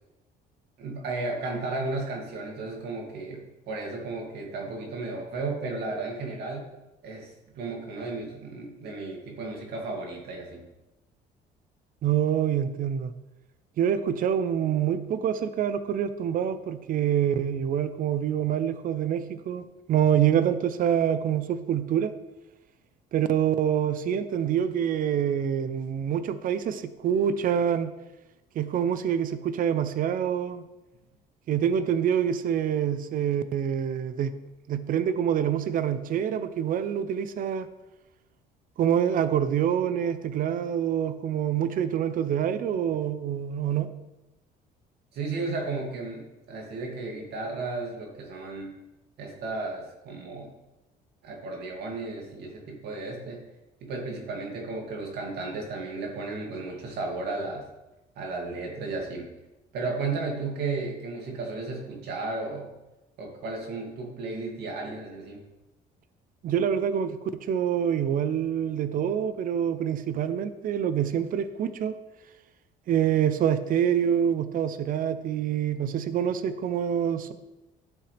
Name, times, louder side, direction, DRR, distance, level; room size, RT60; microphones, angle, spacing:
voice 1, 0.8-6.7 7.0-10.6 45.1-48.7 49.2-50.5 51.2-53.4 53.8-57.6 58.2-59.3 59.7-62.7 63.2-65.4, right 3 dB, 75° right, 0 dB, 2.5 m, -34 dB
voice 2, 12.0-13.1 13.8-22.1 23.1-27.9 28.5-30.6 31.5-34.3 34.7-37.7 38.8-43.9 66.4-71.9 72.9-77.3, right 9 dB, 55° right, 12 dB, 0.7 m, -26 dB
12.0 x 7.6 x 3.4 m, 0.99 s
cardioid pair, 110°, 17 cm